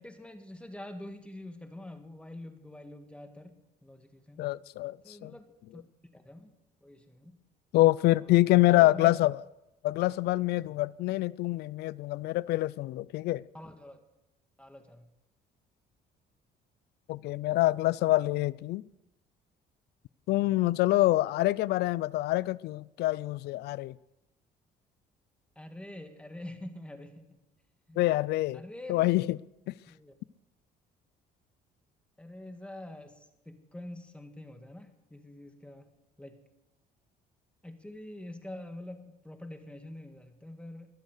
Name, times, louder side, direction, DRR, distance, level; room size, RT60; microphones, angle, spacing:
voice 1, 0.0-4.5 5.0-5.8 6.1-6.5 6.8-7.4 8.2-8.4 8.7-9.1 13.5-14.0 14.6-15.1 25.6-27.4 27.9-28.1 28.5-29.2 29.9-30.1 32.2-35.9 36.2-36.4 37.6-40.9, left 1 dB, 5° left, 1.8 m, -46 dB
voice 2, 4.4-5.3 7.7-9.4 9.8-13.4 17.1-18.8 20.3-23.9 28.0-28.6 28.9-29.4 29.7-29.8, left 17 dB, 75° left, 0.4 m, -26 dB
22.0 x 8.1 x 6.7 m
cardioid pair, 110°, 17 cm